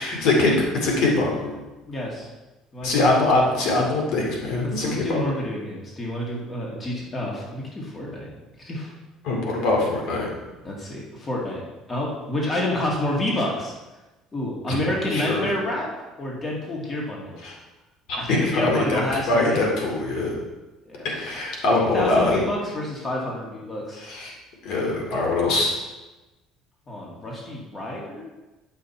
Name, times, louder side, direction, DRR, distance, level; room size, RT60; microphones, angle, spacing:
voice 1, 0.0-1.5 2.8-5.2 9.2-10.3 14.7-14.8 15.1-15.5 17.4-17.6 18.1-20.3 21.0-22.4 24.0-24.3 24.6-25.7, left 2 dB, 70° left, -1 dB, 2.3 m, -23 dB
voice 2, 1.9-2.3 2.7-3.2 4.6-8.3 8.6-8.9 10.6-11.6 11.9-13.7 14.3-15.9 16.2-17.4 18.1-19.6 20.9-21.1 21.8-24.0 26.9-28.3, left 1 dB, 25° left, -3 dB, 2.2 m, -28 dB
10.5 x 5.7 x 4.5 m, 1.1 s
cardioid pair, 130°, 0 cm